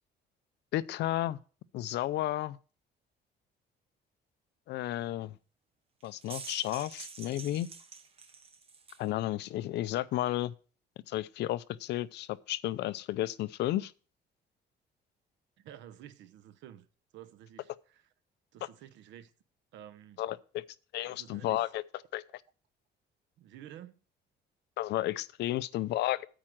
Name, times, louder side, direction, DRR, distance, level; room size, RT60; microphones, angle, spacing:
voice 1, 0.7-1.4 1.7-2.6 4.7-5.4 6.0-7.7 9.0-10.5 11.1-13.9 20.2-20.6 20.9-21.8 22.1-22.2 24.8-26.2, left 14 dB, 65° left, 0.5 m, -32 dB
sound 1, 6.0-9.1, right 5 dB, 30° right, 0.8 m, -47 dB
voice 2, 15.6-16.9 17.1-18.0 18.5-19.3 19.7-20.2 21.1-21.7 23.4-24.0, right 11 dB, 80° right, 0.9 m, -51 dB
8.9 x 4.8 x 7.6 m
cardioid pair, 165°, 19 cm